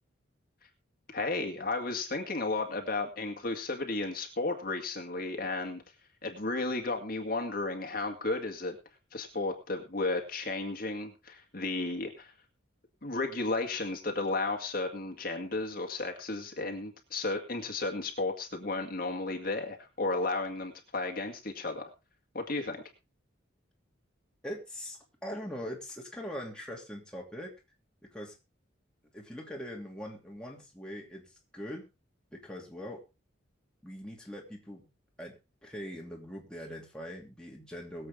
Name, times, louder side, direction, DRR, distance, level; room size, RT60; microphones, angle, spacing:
voice 1, 1.1-5.8 6.2-8.8 9.1-12.3 13.0-21.9 22.3-22.8, left 3 dB, 45° left, 4 dB, 2.1 m, -33 dB
voice 2, 24.4-27.5 28.1-28.4 29.1-31.9 32.3-33.0 33.8-34.9 35.2-38.1, equal, 5° left, -2 dB, 2.9 m, -42 dB
22.0 x 7.8 x 3.7 m, 0.28 s
head